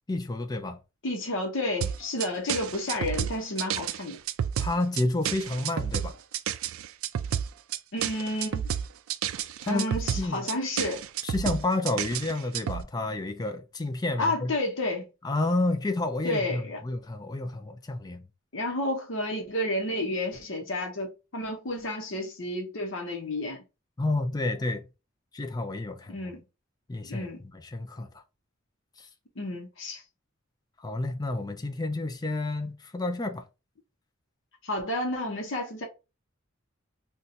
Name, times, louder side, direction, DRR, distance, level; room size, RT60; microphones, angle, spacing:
voice 1, 0.1-0.8 4.6-6.2 9.6-9.8 10.2-10.5 11.2-14.5 15.2-18.3 24.0-24.8 25.3-26.4 26.9-28.2 29.0-29.1 30.8-33.5, left 2 dB, 20° left, 0.4 m, -30 dB
voice 2, 1.0-4.2 7.9-8.7 9.7-11.0 14.2-15.1 16.2-16.8 18.5-23.6 26.1-26.4 27.1-27.4 29.4-30.0 34.6-35.9, left 1 dB, 65° left, 0.8 m, -31 dB
sound 1, 1.8-12.8, right 9 dB, 85° right, 0.3 m, -31 dB
2.6 x 2.2 x 4.0 m
head